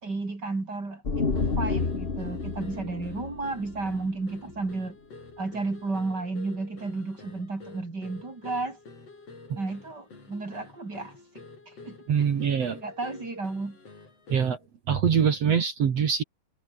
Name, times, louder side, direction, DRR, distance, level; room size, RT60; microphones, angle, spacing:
voice 1, 0.0-5.0 5.4-8.8 9.6-12.0 12.7-13.8, right 3 dB, 30° right, 4.6 m, -33 dB
sound 1, 1.0-4.7, left 4 dB, 25° left, 1.5 m, -30 dB
sound 2, 1.3-14.7, left 3 dB, 45° left, 7.3 m, -49 dB
voice 2, 12.1-12.8 14.3-14.6 14.9-16.2, right 7 dB, 55° right, 2.9 m, -24 dB
omnidirectional pair, 3.7 m